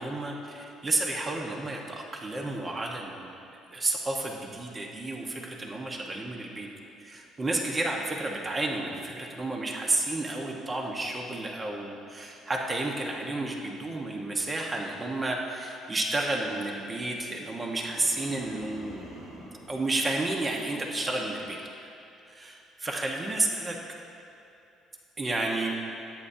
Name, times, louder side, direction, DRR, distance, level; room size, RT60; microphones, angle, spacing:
voice 1, 0.0-3.4 3.7-6.7 7.0-19.1 19.7-21.9 22.3-23.8 25.2-25.7, right 2 dB, 25° right, 0 dB, 1.3 m, -31 dB
sound 1, 17.6-19.7, right 2 dB, 70° right, 2.6 m, -45 dB
17.0 x 8.7 x 2.8 m, 2.7 s
supercardioid pair, 85°, 0 cm